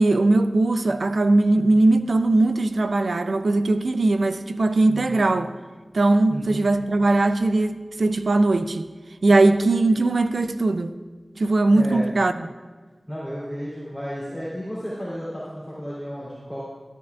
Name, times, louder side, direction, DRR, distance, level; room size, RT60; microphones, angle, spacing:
voice 1, 0.0-5.5 5.9-8.9 9.2-10.9 11.4-12.3, right 2 dB, 85° right, 0.5 m, -20 dB
voice 2, 4.9-5.2 6.3-6.7 11.7-12.1 13.1-16.6, equal, 5° right, 3.2 m, -33 dB
13.5 x 13.5 x 2.4 m
wide cardioid pair, 55°, 0 cm